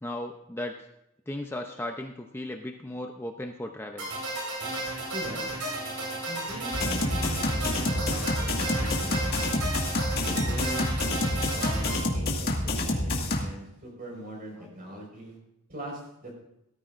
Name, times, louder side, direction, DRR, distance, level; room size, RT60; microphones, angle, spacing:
voice 1, 0.0-0.8 1.3-4.1 14.6-14.7, left 1 dB, 10° left, 3 dB, 0.6 m, -36 dB
sound 1, 4.0-12.0, right 1 dB, 85° right, 4.5 m, -33 dB
voice 2, 5.1-5.5 6.3-9.5 10.2-11.0 11.5-11.9 12.1-15.4 15.7-16.3, equal, 40° right, -1 dB, 5.0 m, -40 dB
sound 2, 6.7-13.4, left 1 dB, 50° left, 1.9 m, -28 dB
18.0 x 13.5 x 2.6 m, 0.83 s
head